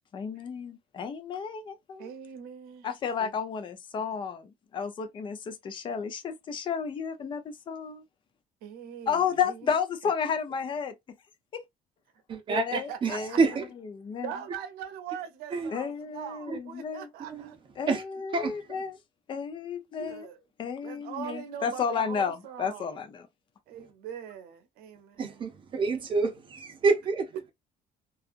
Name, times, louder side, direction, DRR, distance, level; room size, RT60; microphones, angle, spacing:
voice 1, 0.1-2.1 2.8-8.0 9.1-11.2 11.5-11.6 12.5-14.3 15.7-17.1 17.8-19.0 19.3-20.3 20.6-23.3, left 6 dB, 30° left, 0.5 m, -32 dB
voice 2, 2.0-2.9 3.2-3.3 8.6-9.6 12.5-13.4 14.2-17.6 20.1-20.4 20.8-23.0 23.7-25.4 27.3-27.5, right 9 dB, 90° right, 0.7 m, -41 dB
voice 3, 12.3-13.1 13.4-13.6 15.5-15.7 17.3-17.5 17.9-18.0 18.3-18.5 20.0-20.1 25.2-27.3, right 4 dB, 30° right, 0.6 m, -27 dB
2.7 x 2.4 x 2.4 m
cardioid pair, 155°, 16 cm